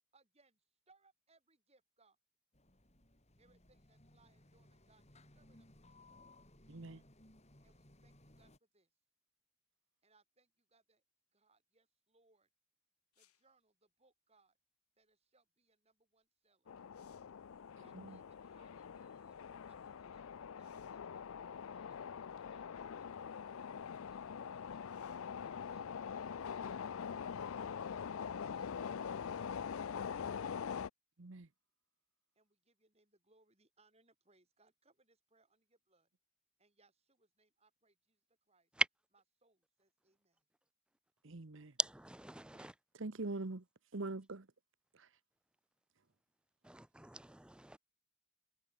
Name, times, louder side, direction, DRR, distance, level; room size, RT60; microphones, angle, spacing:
voice 1, 0.1-2.2 3.4-6.1 7.6-8.9 10.0-11.0 11.3-12.5 13.2-14.6 15.0-16.7 17.8-19.4 19.7-21.3 21.7-28.7 29.2-30.3 32.4-36.1 36.6-38.7 39.1-40.4, right 3 dB, 30° right, 7.2 m, -73 dB
sound 1, 2.5-8.6, left 1 dB, 30° left, 6.0 m, -63 dB
voice 2, 6.7-7.0 17.9-18.2 31.2-31.5 41.2-41.8 42.5-44.5 44.9-45.2, right 2 dB, 60° right, 1.0 m, -44 dB
sound 2, 13.1-13.6 16.2-16.3 16.7-17.4 20.6-21.1 22.1-22.2 24.8-25.4 29.0-29.1, left 13 dB, 85° left, 6.8 m, -75 dB
sound 3, 16.7-30.9, left 7 dB, 65° left, 0.4 m, -44 dB
voice 3, 41.8-42.7 46.7-47.8, right 2 dB, 5° right, 0.4 m, -42 dB
head